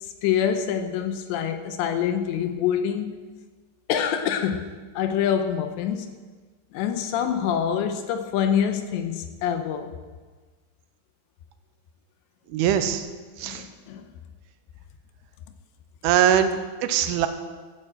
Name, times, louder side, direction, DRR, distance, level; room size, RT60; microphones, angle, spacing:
voice 1, 0.0-3.2 3.9-6.1 6.7-9.9 13.4-14.1, left 8 dB, 80° left, 7 dB, 2.8 m, -26 dB
voice 2, 12.5-13.0 13.4-13.6 16.0-17.3, right 9 dB, 80° right, 8 dB, 3.3 m, -22 dB
14.5 x 9.3 x 7.6 m, 1.4 s
omnidirectional pair, 5.7 m